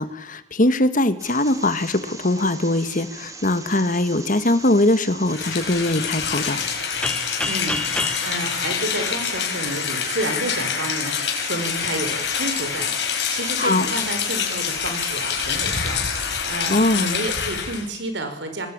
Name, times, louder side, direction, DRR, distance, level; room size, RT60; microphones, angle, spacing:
voice 1, 0.0-6.6 13.6-13.9 16.7-17.1, left 1 dB, 50° left, 10 dB, 1.9 m, -21 dB
sound 1, 1.2-16.4, right 3 dB, 20° right, 2.9 m, -40 dB
Rain, 5.3-17.9, left 7 dB, 80° left, 5.1 m, -26 dB
sound 2, 7.0-9.8, left 1 dB, 5° left, 0.9 m, -30 dB
voice 2, 7.4-18.7, right 2 dB, 90° right, 7 dB, 5.0 m, -30 dB
25.0 x 19.5 x 8.9 m, 0.91 s
head